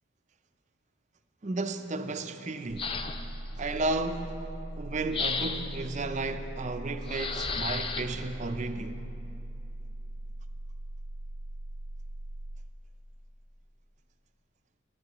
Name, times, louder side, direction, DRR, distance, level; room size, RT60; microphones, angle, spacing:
voice 1, 1.4-2.9 3.6-4.5 4.8-9.0, right 2 dB, 35° right, 0.5 m, -33 dB
sound 1, 2.7-12.7, right 1 dB, 80° right, 0.6 m, -40 dB
sound 2, 2.8-3.5 5.1-5.8 7.1-8.0, left 5 dB, 25° left, 0.4 m, -33 dB
21.5 x 10.5 x 3.0 m
head